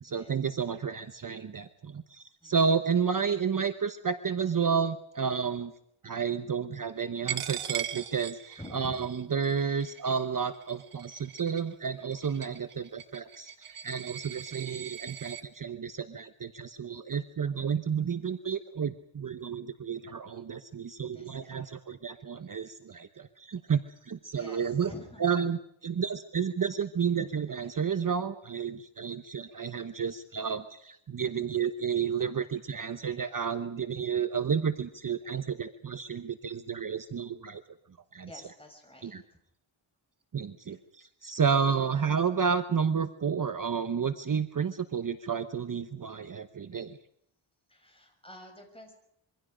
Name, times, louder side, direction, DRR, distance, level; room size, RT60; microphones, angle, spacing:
voice 1, 0.0-5.7 6.0-24.9 25.2-37.6 38.1-38.3 39.0-39.2 40.3-47.0, right 6 dB, 40° right, 9 dB, 1.0 m, -31 dB
Coin (dropping), 7.3-15.4, right 9 dB, 80° right, 1.4 m, -40 dB
voice 2, 8.6-9.1 9.5-9.8 14.5-14.9 18.0-18.2 21.0-21.7 24.3-25.5 38.2-39.4 40.7-40.8 47.7-48.9, left 1 dB, 10° left, 3 dB, 6.3 m, -49 dB
26.0 x 23.5 x 5.1 m, 0.74 s
wide cardioid pair, 150°, 49 cm